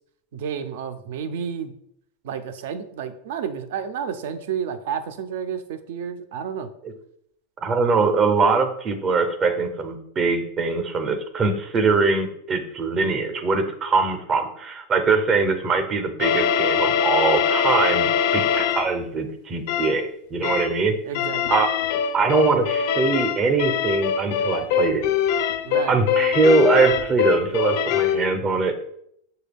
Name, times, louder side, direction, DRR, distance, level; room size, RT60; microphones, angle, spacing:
voice 1, 0.3-1.7 2.2-6.7 20.4-20.6 21.0-21.5 25.6-25.9, right 7 dB, 70° right, 10 dB, 0.4 m, -31 dB
voice 2, 7.6-20.9 21.5-21.7 22.1-25.0 25.9-28.8, right 4 dB, 25° right, 7 dB, 0.5 m, -22 dB
sound 1, 16.2-18.9 19.7-20.0 20.4-20.8 21.1-28.2, left 8 dB, 60° left, 0.4 m, -23 dB
6.4 x 2.2 x 3.4 m, 0.73 s
supercardioid pair, 150°, 0 cm